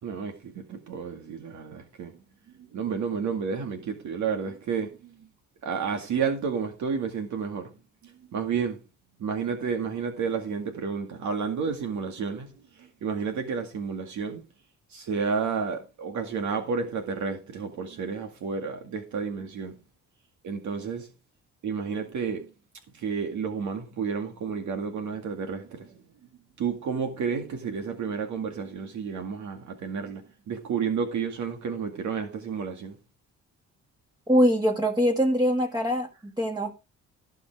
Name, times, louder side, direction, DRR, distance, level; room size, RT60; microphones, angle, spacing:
voice 1, 0.0-2.1 2.6-5.2 5.6-7.7 8.0-8.8 9.2-14.4 14.9-19.8 20.4-21.1 21.6-22.5 22.9-26.0 26.6-33.0, right 6 dB, 70° right, 2.2 m, -31 dB
voice 2, 34.3-36.1 36.4-36.7, equal, 15° right, 1.7 m, -22 dB
16.0 x 5.6 x 4.7 m
cardioid pair, 90°, 30 cm